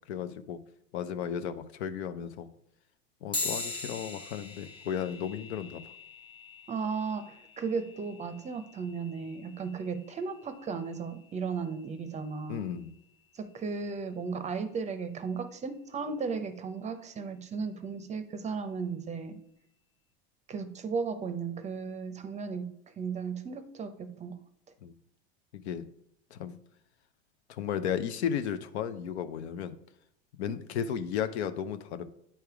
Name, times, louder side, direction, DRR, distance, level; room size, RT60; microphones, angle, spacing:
voice 1, 0.1-0.6 0.9-2.5 3.2-5.8 12.5-12.9 24.8-24.9 25.5-25.8 26.3-26.6 27.5-29.7 30.4-32.0, left 8 dB, 80° left, 11 dB, 0.6 m, -34 dB
sound 1, 3.3-13.2, left 3 dB, 15° left, 0.9 m, -43 dB
voice 2, 6.7-12.7 13.3-19.4 20.5-24.4, right 5 dB, 20° right, 11 dB, 0.6 m, -35 dB
9.0 x 3.4 x 4.6 m, 0.72 s
supercardioid pair, 110°, 32 cm